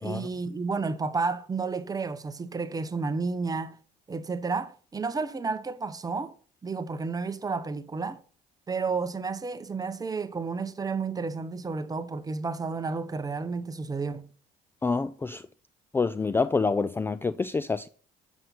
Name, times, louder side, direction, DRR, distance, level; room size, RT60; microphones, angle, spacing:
voice 1, 0.0-3.8 4.1-6.3 6.6-8.2 8.7-14.3, right 4 dB, 20° right, 0.8 m, -31 dB
voice 2, 14.8-15.4 15.9-17.9, left 4 dB, 15° left, 0.3 m, -27 dB
7.6 x 7.1 x 4.0 m
cardioid pair, 110°, 17 cm